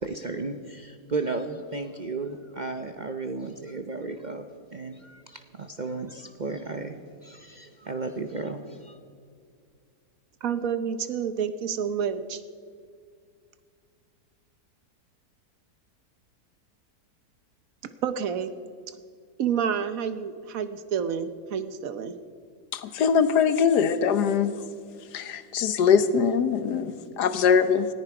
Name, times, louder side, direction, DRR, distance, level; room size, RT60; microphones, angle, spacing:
voice 1, 0.0-9.0, right 3 dB, 45° right, 6 dB, 0.6 m, -34 dB
voice 2, 10.4-12.4 17.8-18.5 19.4-22.1, right 7 dB, 65° right, 11 dB, 1.1 m, -29 dB
voice 3, 22.7-24.5 25.1-27.9, left 6 dB, 90° left, 12 dB, 1.5 m, -22 dB
19.5 x 14.5 x 4.8 m, 2.2 s
omnidirectional pair, 1.7 m